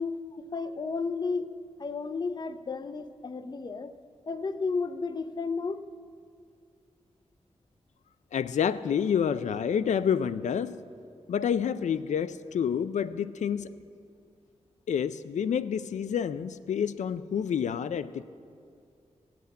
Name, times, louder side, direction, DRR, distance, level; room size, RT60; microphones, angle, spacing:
voice 1, 0.0-1.5 1.8-3.9 4.3-5.8, left 4 dB, 35° left, 11 dB, 0.5 m, -32 dB
voice 2, 8.3-10.8 11.3-13.7 14.9-18.2, left 8 dB, 85° left, 13 dB, 0.4 m, -28 dB
16.0 x 5.9 x 8.6 m, 2.3 s
wide cardioid pair, 130°, 12 cm